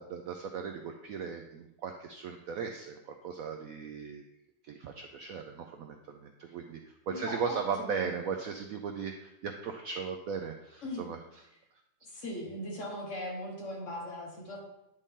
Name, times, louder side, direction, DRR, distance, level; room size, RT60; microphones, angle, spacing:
voice 1, 0.0-4.2 4.6-11.2, right 6 dB, 80° right, 4 dB, 0.7 m, -37 dB
voice 2, 7.1-8.1 10.8-11.1 12.0-14.6, left 1 dB, 45° left, -2 dB, 1.8 m, -39 dB
9.9 x 4.1 x 3.6 m, 0.88 s
omnidirectional pair, 2.0 m